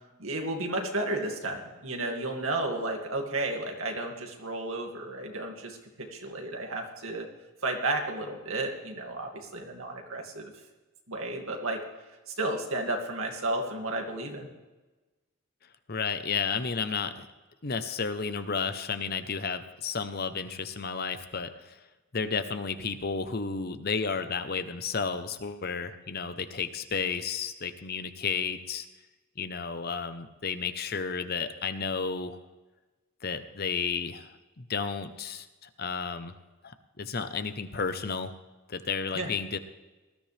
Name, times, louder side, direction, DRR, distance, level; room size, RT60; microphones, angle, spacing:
voice 1, 0.2-5.8 6.1-7.3 7.6-10.5 11.1-11.8 12.3-14.5 39.1-39.3, right 2 dB, 70° right, 2 dB, 2.4 m, -32 dB
voice 2, 15.9-17.3 17.6-21.8 22.1-28.8 29.4-32.4 33.2-34.3 34.6-36.3 36.6-38.4 38.7-39.6, left 5 dB, 45° left, 10 dB, 0.8 m, -32 dB
19.5 x 13.5 x 3.5 m, 1.2 s
head